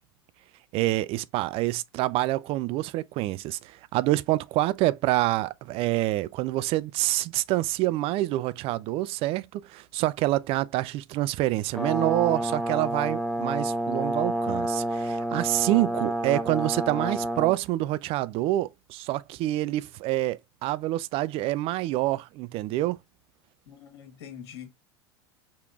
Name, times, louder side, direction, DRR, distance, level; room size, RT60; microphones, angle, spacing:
voice 1, 0.7-23.0, right 16 dB, 45° right, 0.4 m, -27 dB
Brass instrument, 11.7-17.5, right 1 dB, ahead, 0.9 m, -29 dB
voice 2, 23.7-24.7, left 8 dB, 70° left, 1.5 m, -44 dB
5.0 x 3.0 x 2.4 m
hypercardioid pair, 85°, 14 cm